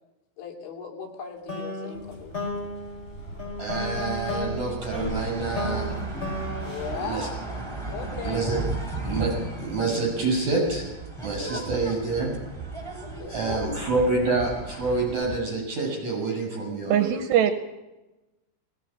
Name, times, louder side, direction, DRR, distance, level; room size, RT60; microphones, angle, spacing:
voice 1, 0.4-2.4 6.6-7.6 7.9-8.5 11.5-11.9 13.0-13.8, left 6 dB, 75° left, 2 dB, 5.1 m, -37 dB
sound 1, 1.5-7.9, left 2 dB, 15° left, 5.2 m, -34 dB
sound 2, 1.9-7.0, right 2 dB, 30° left, 6.0 m, -38 dB
voice 2, 3.6-5.9 7.0-7.3 8.2-8.6 9.0-10.9 11.2-12.3 13.3-17.1, right 3 dB, 40° right, -1 dB, 9.1 m, -27 dB
sound 3, 4.9-15.4, right 3 dB, 5° right, 2.6 m, -35 dB
voice 3, 16.9-17.5, right 10 dB, 75° right, 8 dB, 3.0 m, -21 dB
19.5 x 17.5 x 8.9 m, 1.0 s
omnidirectional pair, 5.3 m